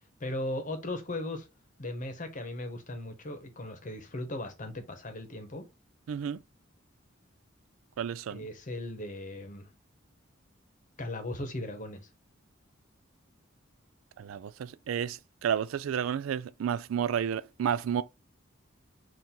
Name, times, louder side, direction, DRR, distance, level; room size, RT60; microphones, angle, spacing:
voice 1, 0.2-1.5 1.8-5.6 8.3-9.7 11.0-12.0, left 1 dB, 40° left, 0.9 m, -37 dB
voice 2, 6.1-6.4 8.0-8.5 14.2-18.0, right 8 dB, 90° right, 0.3 m, -31 dB
4.3 x 2.5 x 3.7 m
head